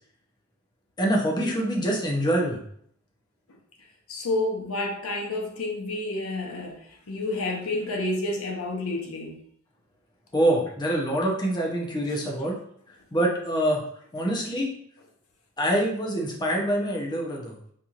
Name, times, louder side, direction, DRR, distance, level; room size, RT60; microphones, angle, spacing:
voice 1, 1.0-2.6 10.3-12.6 13.1-13.8 14.1-14.7 15.6-17.6, right 1 dB, 20° left, 0.7 m, -25 dB
voice 2, 4.1-9.4 14.2-14.3, left 2 dB, 80° left, 0.8 m, -30 dB
4.3 x 2.9 x 2.5 m
head